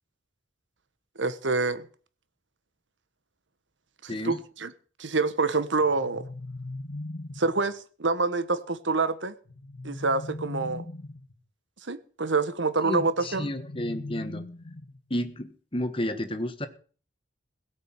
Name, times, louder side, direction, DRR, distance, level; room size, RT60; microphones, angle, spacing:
voice 1, 1.2-1.9 4.0-4.7 5.0-6.2 7.4-9.3 9.8-10.8 11.9-13.5, right 3 dB, 75° right, 1.3 m, -27 dB
voice 2, 4.1-4.4 12.8-14.4 15.1-16.7, left 1 dB, 30° left, 1.4 m, -31 dB
sound 1, 5.8-7.6 9.4-11.3 13.2-15.1, left 2 dB, 55° left, 1.2 m, -39 dB
17.0 x 6.5 x 9.0 m
head